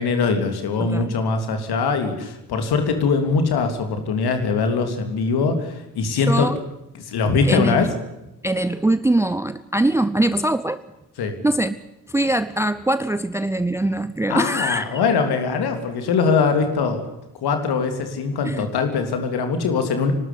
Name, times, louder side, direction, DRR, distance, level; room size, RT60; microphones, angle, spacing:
voice 1, 0.0-6.5 6.9-7.9 11.2-11.3 14.3-17.0 17.4-20.1, left 4 dB, 50° left, 7 dB, 3.3 m, -22 dB
voice 2, 0.8-1.1 6.2-6.6 7.4-7.9 8.4-10.8 11.2-11.8 12.1-15.0 18.4-18.7, right 1 dB, 5° right, 14 dB, 0.7 m, -22 dB
25.0 x 12.5 x 9.7 m, 0.91 s
figure-of-eight pair, 45°, 48 cm